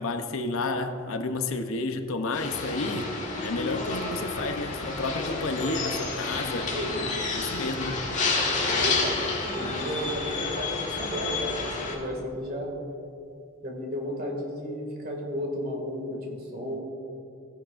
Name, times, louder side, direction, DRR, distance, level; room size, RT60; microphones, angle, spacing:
voice 1, 0.0-3.1 3.4-6.7 7.3-8.1, left 3 dB, 75° left, 7 dB, 0.7 m, -31 dB
sound 1, 2.3-12.0, left 3 dB, 35° left, 1.6 m, -30 dB
voice 2, 6.6-7.1 8.7-12.7 13.6-16.8, equal, 45° right, 0 dB, 2.2 m, -33 dB
15.5 x 10.0 x 2.5 m, 2.5 s
head